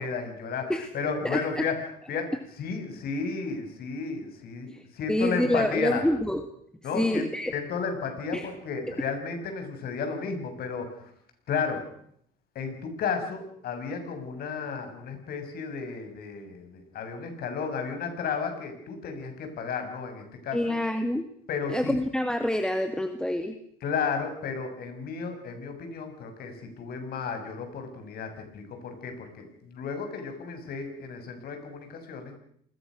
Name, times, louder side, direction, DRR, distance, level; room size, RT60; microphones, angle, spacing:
voice 1, 0.0-1.8 2.1-2.3 2.6-6.0 6.8-11.1 11.5-11.8 12.6-20.8 21.5-22.0 23.8-32.3, left 5 dB, 65° left, 6 dB, 6.9 m, -33 dB
voice 2, 1.2-1.6 4.7-6.4 6.9-7.5 8.3-8.5 8.9-9.0 20.5-21.2 21.7-23.6, left 1 dB, 5° left, 7 dB, 2.1 m, -27 dB
28.0 x 21.0 x 6.4 m, 0.69 s
cardioid pair, 110°, 17 cm